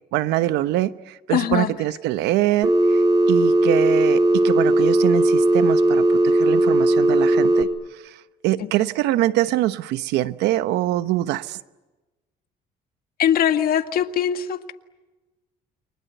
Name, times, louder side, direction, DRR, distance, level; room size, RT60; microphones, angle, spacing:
voice 1, 0.1-3.0 3.3-7.7 8.0-8.2 8.4-11.6, right 14 dB, 90° right, 1.0 m, -24 dB
voice 2, 1.3-1.7 8.6-8.7 13.2-14.7, left 9 dB, 60° left, 1.9 m, -21 dB
Telephone, 2.6-7.6, right 1 dB, 20° right, 4.2 m, -17 dB
29.5 x 24.5 x 8.1 m
cardioid pair, 110°, 17 cm